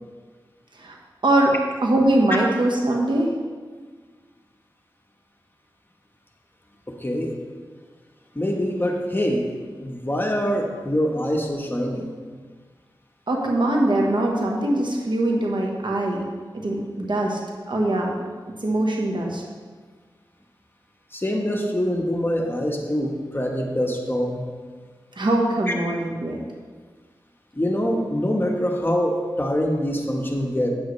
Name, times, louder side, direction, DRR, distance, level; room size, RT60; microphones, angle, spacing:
voice 1, 1.2-1.5 1.8-3.3 13.3-16.2 16.6-17.4 17.7-18.2 18.6-19.4 25.1-26.4, right 1 dB, 65° right, -1 dB, 1.2 m, -22 dB
voice 2, 6.9-7.4 8.3-9.5 9.8-12.1 21.1-24.4 25.7-25.8 27.5-30.7, equal, 25° left, 1 dB, 1.2 m, -24 dB
9.1 x 7.9 x 3.2 m, 1.5 s
cardioid pair, 45°, 9 cm